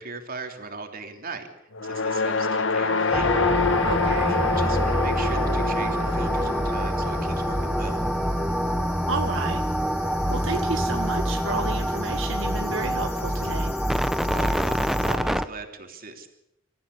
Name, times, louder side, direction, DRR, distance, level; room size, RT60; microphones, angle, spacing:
voice 1, 0.0-1.5 1.8-3.4 4.3-8.0 14.3-16.3, right 4 dB, 50° right, 5 dB, 3.1 m, -39 dB
sound 1, 1.7-10.1, left 4 dB, 70° left, 1.5 m, -28 dB
sound 2, 3.1-15.5, equal, ahead, 0.8 m, -25 dB
sound 3, 3.5-15.2, left 5 dB, 35° left, 4.1 m, -47 dB
voice 2, 3.8-4.4 9.1-9.6 10.3-13.7, right 3 dB, 85° right, 4 dB, 2.0 m, -31 dB
27.0 x 14.5 x 8.4 m, 0.84 s
head